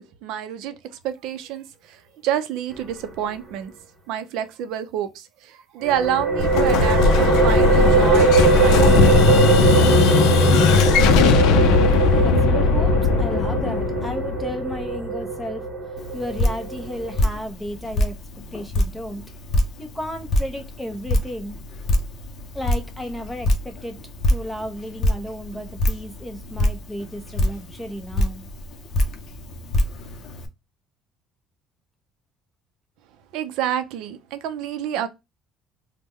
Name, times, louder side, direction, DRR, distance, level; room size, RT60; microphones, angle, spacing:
voice 1, 0.0-3.7 4.1-8.8 33.3-35.1, right 10 dB, 80° right, 0.5 m, -28 dB
sound 1, 5.8-17.2, right 4 dB, 30° right, 1.0 m, -21 dB
Explosion, 6.4-15.1, left 5 dB, 85° left, 0.4 m, -18 dB
voice 2, 12.2-15.7 16.1-18.2 18.5-19.2 19.8-21.6 22.5-24.0 24.3-28.5, equal, 5° left, 0.7 m, -33 dB
Drip, 16.0-30.5, left 1 dB, 45° left, 0.6 m, -26 dB
3.4 x 2.1 x 3.1 m
cardioid pair, 155°, 0 cm